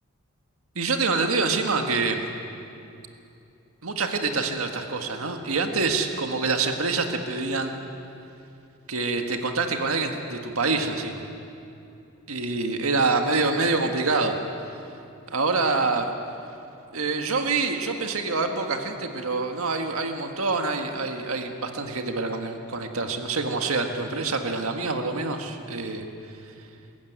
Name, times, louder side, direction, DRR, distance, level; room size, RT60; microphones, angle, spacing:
voice 1, 0.8-2.2 3.8-7.8 8.9-11.2 12.3-14.4 15.3-16.1 16.9-26.0, right 3 dB, 90° right, 4 dB, 1.7 m, -26 dB
22.0 x 14.5 x 9.5 m, 2.7 s
head